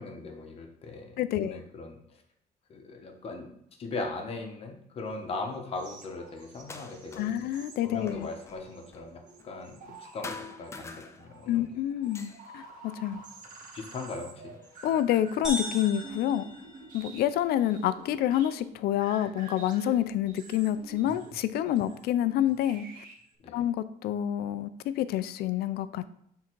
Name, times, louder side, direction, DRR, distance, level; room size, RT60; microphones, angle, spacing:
voice 1, 0.0-2.2 2.7-3.5 3.8-7.5 7.8-11.7 13.1-13.2 13.7-14.5 23.4-23.6, left 3 dB, 35° left, 3 dB, 1.1 m, -39 dB
voice 2, 1.2-1.6 7.2-8.3 11.5-13.2 14.8-16.5 16.9-22.9 23.5-26.2, left 11 dB, 70° left, 13 dB, 0.5 m, -28 dB
sound 1, 5.7-23.3, right 3 dB, 55° right, 1.4 m, -50 dB
sound 2, 6.5-7.5 7.7-10.0 10.2-11.6 12.0-13.8 14.5-15.4 16.3-16.4 17.1-18.1, left 4 dB, 15° left, 0.5 m, -47 dB
sound 3, 15.4-17.4, equal, 5° right, 1.6 m, -38 dB
8.2 x 3.8 x 4.6 m, 0.70 s
cardioid pair, 175°, 17 cm